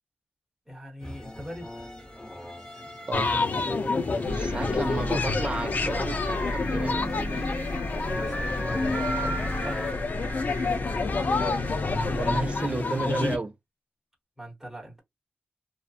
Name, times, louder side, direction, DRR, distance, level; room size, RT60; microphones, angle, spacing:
voice 1, 0.7-1.7 4.0-4.3 7.9-10.3 14.4-15.0, equal, 5° right, 1.1 m, -42 dB
sound 1, 1.0-9.9, left 1 dB, 15° left, 1.0 m, -36 dB
sound 2, 3.1-13.4, left 3 dB, 45° left, 0.4 m, -29 dB
sound 3, 4.3-12.8, left 1 dB, 90° left, 1.3 m, -35 dB
voice 2, 4.3-7.5 12.1-13.5, right 3 dB, 30° right, 0.4 m, -32 dB
2.7 x 2.3 x 2.4 m
wide cardioid pair, 150°, 4 cm